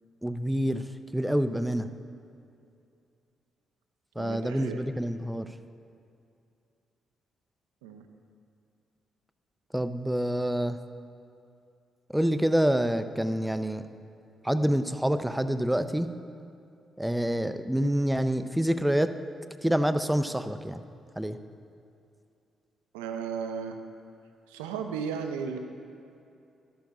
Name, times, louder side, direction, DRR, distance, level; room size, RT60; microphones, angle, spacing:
voice 1, 0.2-1.9 4.2-5.5 9.7-10.8 12.1-13.9 14.4-16.1 17.0-19.2 19.6-20.8 21.2-21.4, equal, 5° right, 11 dB, 0.5 m, -27 dB
voice 2, 4.2-4.8 7.8-8.1 22.9-23.8 24.5-25.6, right 6 dB, 80° right, 6 dB, 0.6 m, -35 dB
12.5 x 11.5 x 2.4 m, 2.6 s
hypercardioid pair, 40°, 0 cm